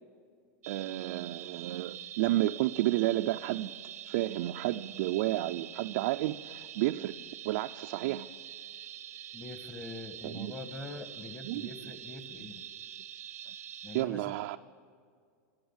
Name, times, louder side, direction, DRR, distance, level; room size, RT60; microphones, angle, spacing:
sound 1, 0.6-14.0, right 11 dB, 90° right, 0.8 m, -45 dB
voice 1, 0.7-3.7 4.1-7.1 7.5-8.3 10.2-10.5 11.4-11.6 13.9-14.6, right 16 dB, 65° right, 5 dB, 0.4 m, -31 dB
voice 2, 9.3-12.6 13.8-14.4, left 2 dB, 15° left, 9 dB, 1.3 m, -44 dB
14.0 x 11.0 x 7.2 m, 2.2 s
hypercardioid pair, 125°, 8 cm